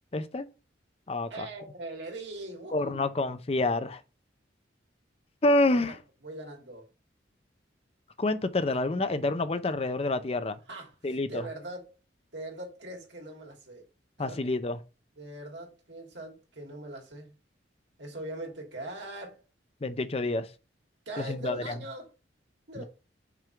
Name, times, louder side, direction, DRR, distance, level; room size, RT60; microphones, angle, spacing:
voice 1, 0.1-0.5 1.1-1.5 2.7-4.0 5.4-6.0 8.2-10.6 11.0-11.4 14.2-14.8 19.8-20.5 21.2-21.7 22.8-22.9, left 2 dB, 30° left, 0.5 m, -28 dB
voice 2, 1.3-3.1 5.7-6.0 6.2-6.9 8.6-8.7 10.7-12.0 12.3-13.8 14.2-14.4 15.2-17.3 18.0-19.4 21.1-22.1 22.7-22.9, right 1 dB, 75° right, 2.7 m, -41 dB
5.9 x 3.6 x 5.8 m
head